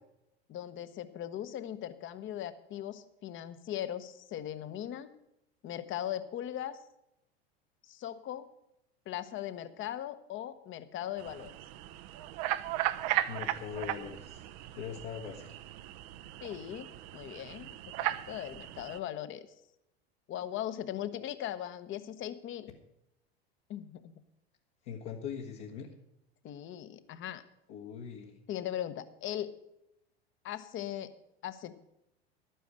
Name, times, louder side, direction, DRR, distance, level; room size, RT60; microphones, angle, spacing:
voice 1, 0.5-5.1 5.6-6.8 7.9-8.5 9.1-11.5 16.4-17.8 18.0-19.5 20.3-22.7 23.7-24.2 26.4-27.4 28.5-29.5 30.4-31.1 31.4-31.8, left 11 dB, 40° left, 13 dB, 1.1 m, -39 dB
sound 1, 11.2-19.0, right 14 dB, 50° right, 0.7 m, -37 dB
voice 2, 13.3-14.5 14.7-15.6 24.8-25.9 27.7-28.4, left 8 dB, 60° left, -1 dB, 1.6 m, -41 dB
11.5 x 9.3 x 6.4 m, 0.83 s
hypercardioid pair, 90°, 31 cm